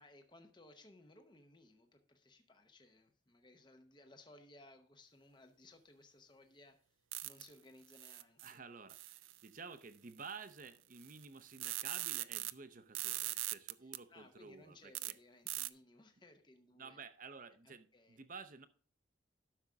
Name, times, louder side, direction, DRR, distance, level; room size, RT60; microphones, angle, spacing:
voice 1, 0.0-6.9 7.2-8.6 14.1-17.0 17.6-18.2, left 2 dB, 25° left, 6 dB, 0.8 m, -61 dB
sound 1, 7.1-7.5 7.9-8.5 8.9-9.5 10.6-10.7 10.9-12.5 12.9-14.0 14.9-15.1 15.5-15.7, right 17 dB, 80° right, 0.4 m, -41 dB
voice 2, 8.4-15.2 16.8-18.7, right 5 dB, 40° right, 11 dB, 0.7 m, -52 dB
12.0 x 6.3 x 3.5 m, 0.41 s
head